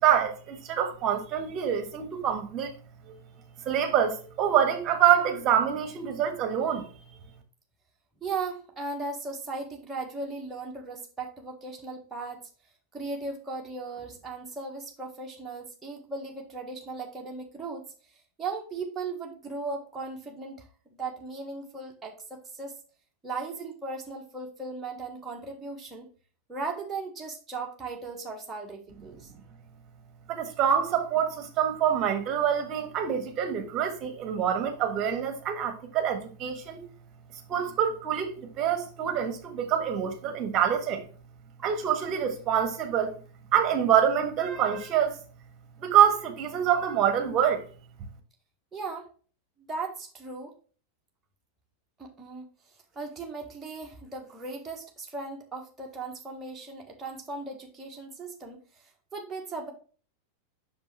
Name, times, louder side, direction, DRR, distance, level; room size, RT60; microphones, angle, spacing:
voice 1, 0.0-2.7 3.1-3.2 3.6-6.9 30.3-36.8 37.5-41.0 41.6-43.1 43.5-45.2 45.8-47.6, right 9 dB, 35° right, 1.4 m, -26 dB
voice 2, 8.2-12.5 12.9-17.8 18.4-22.7 23.2-26.1 26.5-29.3 48.7-49.1 49.7-50.5 52.0-52.5 52.9-58.8 59.1-59.7, right 3 dB, 10° right, 1.4 m, -37 dB
6.2 x 5.2 x 3.2 m
figure-of-eight pair, 90°, 0 cm